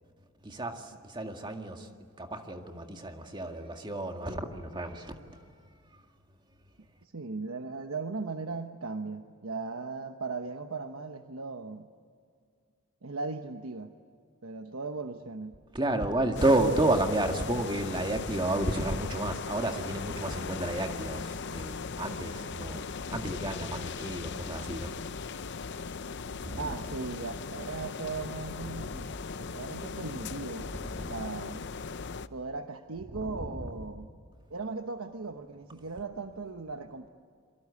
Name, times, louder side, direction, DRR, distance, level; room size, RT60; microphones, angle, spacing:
voice 1, 0.4-1.9 2.2-5.4 15.7-24.9 26.3-26.8 28.7-28.8 30.6-31.2 33.1-34.0, right 1 dB, 20° right, 2.0 m, -31 dB
voice 2, 7.0-11.9 13.0-13.9 14.4-15.6 26.6-29.1 29.4-30.7 31.1-31.6 32.3-34.1 34.5-37.1, right 4 dB, 80° right, 1.1 m, -38 dB
sound 1, 16.3-32.3, left 5 dB, 55° left, 0.7 m, -38 dB
28.5 x 23.5 x 8.4 m
head